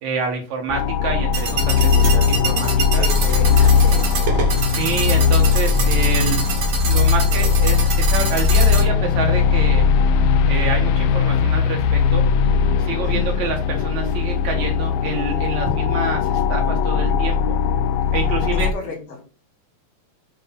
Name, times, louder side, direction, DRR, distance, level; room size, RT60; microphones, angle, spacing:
voice 1, 0.0-3.1 4.4-6.5 6.9-9.9 10.5-12.2 12.8-17.6 18.1-18.7, right 5 dB, 75° right, 1 dB, 2.5 m, -27 dB
sound 1, 0.7-18.7, left 6 dB, 80° left, 1.5 m, -18 dB
sound 2, 1.3-8.8, right 4 dB, 55° right, 1.8 m, -25 dB
voice 2, 3.0-4.1 13.0-13.4 18.5-19.2, left 4 dB, 65° left, 0 dB, 3.5 m, -34 dB
8.2 x 3.0 x 5.4 m, 0.35 s
omnidirectional pair, 3.4 m